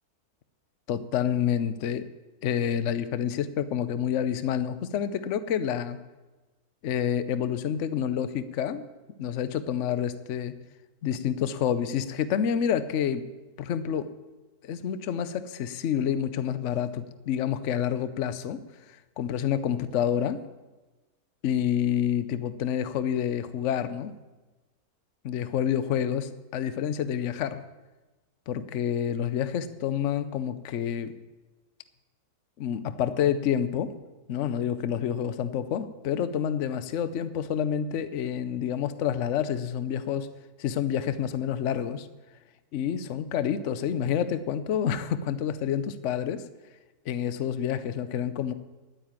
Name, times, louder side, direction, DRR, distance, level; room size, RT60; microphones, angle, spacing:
voice 1, 0.9-2.1 2.4-6.0 6.8-8.8 9.2-10.5 11.0-13.2 13.6-14.1 14.6-18.6 19.2-20.4 21.4-24.1 25.2-27.6 28.5-31.1 32.6-33.9 34.3-40.3 40.6-42.1 42.7-46.4 47.1-48.5, left 9 dB, 60° left, 13 dB, 1.0 m, -28 dB
10.5 x 9.4 x 8.8 m, 1.2 s
omnidirectional pair, 1.6 m